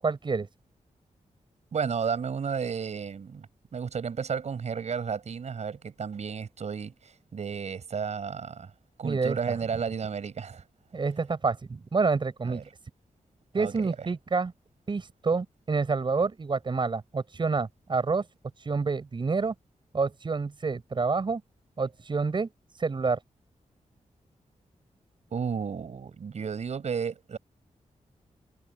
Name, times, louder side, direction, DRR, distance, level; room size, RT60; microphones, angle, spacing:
voice 1, 0.0-0.5 9.0-9.6 10.9-12.6 13.5-14.5 14.9-18.3 18.6-19.5 19.9-21.4 21.8-22.5 22.8-23.2, right 4 dB, 40° right, 7.0 m, -28 dB
voice 2, 1.7-8.7 9.0-10.6 12.5-12.6 13.5-13.9 25.3-27.4, right 6 dB, 60° right, 7.4 m, -33 dB
wide cardioid pair, 155°, 13 cm